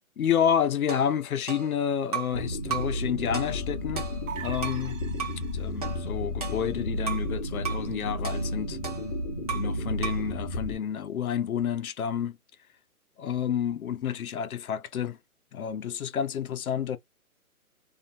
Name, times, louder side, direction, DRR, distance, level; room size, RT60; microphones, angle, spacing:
voice 1, 0.2-4.1 4.4-5.0 5.5-8.8 9.5-12.4 13.2-15.2 15.5-17.0, left 8 dB, 70° left, 0.6 m, -29 dB
sound 1, 0.9-2.4 2.7-3.0 3.3-4.9 5.2-5.4 5.8-7.3 7.6-7.9 8.2-9.8 10.0-10.3, right 7 dB, 25° right, 0.6 m, -36 dB
sound 2, 2.3-10.7, left 1 dB, 20° left, 0.7 m, -32 dB
sound 3, 4.3-5.9, right 7 dB, 60° right, 0.7 m, -42 dB
2.4 x 2.0 x 2.6 m
hypercardioid pair, 155°, 44 cm